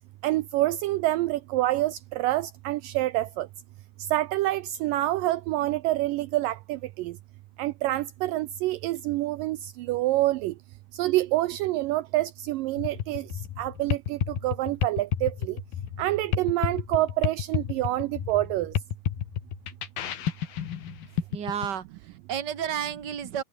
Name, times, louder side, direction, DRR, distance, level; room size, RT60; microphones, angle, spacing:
voice 1, 0.2-3.5 4.1-7.2 7.6-10.5 10.9-13.3 13.6-15.6 16.0-18.7, right 16 dB, 80° right, 2.2 m, -27 dB
sound 1, 12.8-21.7, left 9 dB, 75° left, 4.0 m, -31 dB
voice 2, 21.3-23.4, right 8 dB, 35° right, 2.2 m, -32 dB
omnidirectional pair, 4.3 m